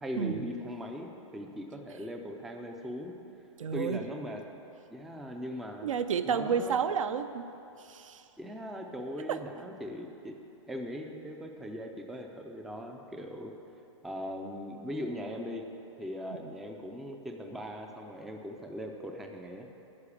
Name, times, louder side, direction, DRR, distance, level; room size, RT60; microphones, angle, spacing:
voice 1, 0.0-3.2 3.7-4.6 4.9-5.9 6.3-6.8 8.4-10.4 10.7-13.5 14.0-15.6 16.0-19.7, equal, ahead, 3 dB, 0.3 m, -39 dB
voice 2, 3.6-4.0 5.8-7.4 7.8-8.2 9.3-9.4 16.3-16.5, right 7 dB, 80° right, 10 dB, 0.7 m, -31 dB
9.8 x 6.6 x 8.4 m, 2.8 s
hypercardioid pair, 160°, 16 cm